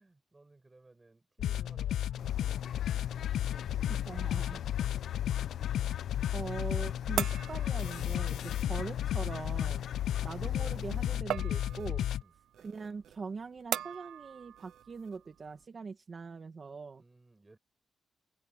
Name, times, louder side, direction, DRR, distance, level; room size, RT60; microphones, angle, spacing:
voice 1, 0.0-3.8 4.1-5.1 5.3-5.5 10.1-10.4 12.2-12.4 17.0-17.6, right 2 dB, 15° right, 6.9 m, -61 dB
sound 1, 1.4-12.2, left 11 dB, 85° left, 0.5 m, -33 dB
Bird, 2.2-11.2, left 9 dB, 65° left, 0.9 m, -45 dB
voice 2, 4.1-4.6 6.3-9.9 10.2-12.1 12.6-17.0, right 4 dB, 35° right, 1.8 m, -42 dB
sound 2, 4.8-15.7, right 10 dB, 80° right, 0.4 m, -42 dB
open air
wide cardioid pair, 150°, 0 cm